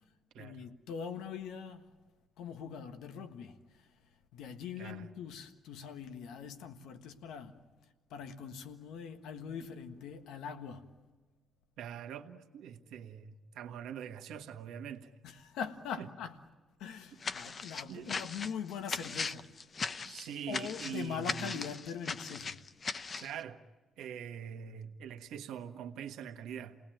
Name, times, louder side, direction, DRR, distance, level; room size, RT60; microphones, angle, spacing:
voice 1, 0.4-1.9 2.4-3.9 4.3-7.6 8.1-10.9 15.2-16.4 16.8-19.5 20.5-22.6, left 7 dB, 90° left, 1.5 m, -42 dB
voice 2, 4.8-5.1 11.8-15.1 16.0-16.1 17.9-18.1 20.0-21.6 23.2-23.6 24.0-26.8, right 8 dB, 85° right, 1.4 m, -43 dB
sound 1, 17.2-23.3, left 4 dB, 40° left, 0.8 m, -39 dB
28.5 x 19.0 x 9.1 m
cardioid pair, 90°, 0 cm